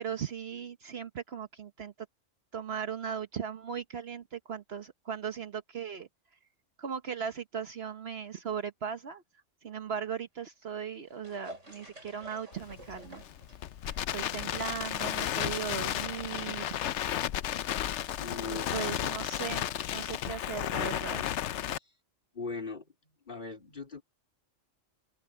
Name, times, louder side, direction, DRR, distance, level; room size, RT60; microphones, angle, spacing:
voice 1, 0.0-1.9 2.5-6.1 6.8-9.2 9.6-13.2 14.1-16.7 18.5-19.6 19.9-21.2, right 7 dB, 55° right, 1.2 m, -38 dB
sound 1, 10.7-19.3 19.5-19.6, right 1 dB, 75° right, 7.4 m, -54 dB
Crackle, 12.5-21.8, left 11 dB, 70° left, 0.9 m, -33 dB
voice 2, 18.2-18.7 22.3-22.8 23.3-24.0, left 4 dB, 40° left, 4.0 m, -39 dB
open air
omnidirectional pair, 1.3 m